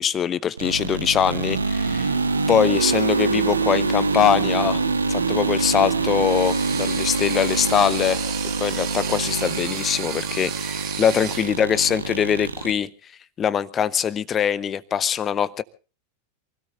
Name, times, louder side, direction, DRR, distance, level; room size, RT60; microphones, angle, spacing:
voice 1, 0.0-2.2 2.5-4.8 5.1-8.2 8.6-12.9 13.4-15.6, left 8 dB, 25° left, 17 dB, 0.9 m, -22 dB
sound 1, 0.6-12.8, right 3 dB, 75° right, 1.4 m, -25 dB
sound 2, 6.0-11.6, right 9 dB, 35° right, 2.5 m, -34 dB
27.5 x 17.0 x 2.7 m, 0.35 s
figure-of-eight pair, 90°, 0 cm